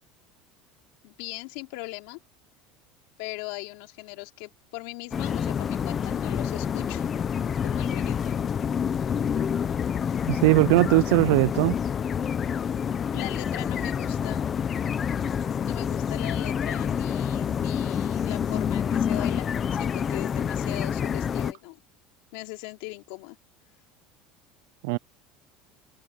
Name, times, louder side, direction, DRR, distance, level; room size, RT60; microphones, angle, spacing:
voice 1, 1.0-2.2 3.2-7.1 7.6-8.4 13.1-14.4 15.6-21.8 22.3-23.4, left 23 dB, 70° left, 2.8 m, -39 dB
sound 1, 5.1-21.5, left 7 dB, 25° left, 0.7 m, -28 dB
voice 2, 10.3-11.8 24.8-25.0, right 24 dB, 75° right, 0.3 m, -20 dB
cardioid pair, 170°, 0 cm